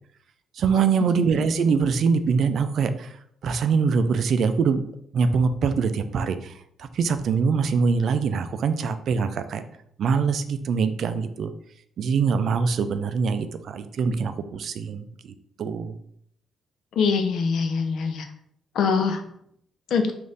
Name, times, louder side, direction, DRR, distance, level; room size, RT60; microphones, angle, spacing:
voice 1, 0.6-3.1 3.4-4.8 5.1-6.5 6.8-9.6 10.0-11.5 12.0-15.1 15.6-15.9, right 5 dB, 65° right, 10 dB, 0.3 m, -23 dB
voice 2, 17.0-18.3 18.7-19.2 19.9-20.1, left 5 dB, 70° left, 6 dB, 0.5 m, -23 dB
3.3 x 2.5 x 3.8 m, 0.69 s
cardioid pair, 90°, 0 cm